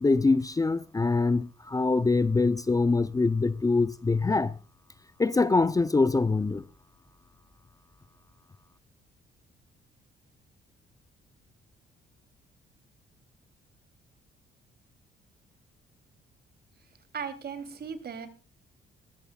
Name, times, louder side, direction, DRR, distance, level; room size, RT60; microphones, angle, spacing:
voice 1, 0.0-4.5 5.2-6.6, left 3 dB, 15° left, 0.6 m, -24 dB
voice 2, 17.1-18.3, right 6 dB, 55° right, 3.1 m, -37 dB
21.5 x 13.0 x 2.4 m
cardioid pair, 90°, 20 cm